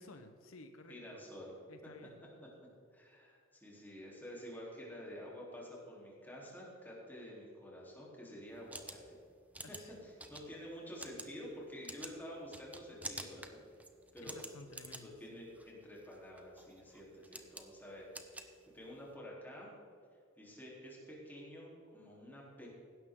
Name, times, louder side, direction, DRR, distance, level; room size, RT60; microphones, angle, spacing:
voice 1, 0.0-1.2 1.7-2.3 9.6-10.0 14.2-15.5, left 2 dB, 80° left, 7 dB, 0.9 m, -55 dB
voice 2, 0.9-1.5 2.9-9.2 9.7-13.6 14.1-14.4 15.0-19.7 20.4-22.7, equal, 10° left, -4 dB, 3.4 m, -49 dB
sound 1, 8.5-19.1, right 2 dB, 5° right, 0.8 m, -50 dB
16.0 x 12.0 x 3.7 m, 2.4 s
head